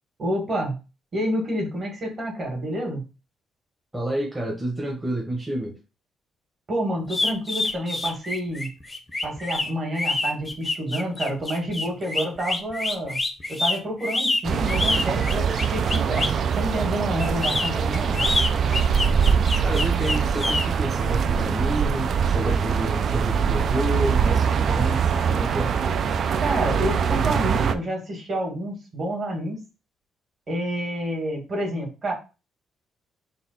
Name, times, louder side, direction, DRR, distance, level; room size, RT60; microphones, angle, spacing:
voice 1, 0.2-0.8 1.1-3.0 6.7-8.7 9.2-13.2 13.5-16.3 16.5-18.2 26.4-29.6 30.5-32.1, right 1 dB, 40° right, 1.9 m, -28 dB
voice 2, 3.9-5.8 19.6-25.8, right 1 dB, 10° right, 0.9 m, -29 dB
sound 1, 7.1-16.4 17.2-20.6, left 2 dB, 20° left, 0.6 m, -27 dB
sound 2, 14.4-27.8, right 7 dB, 55° right, 0.3 m, -23 dB
4.1 x 2.3 x 4.1 m
cardioid pair, 115°, 0 cm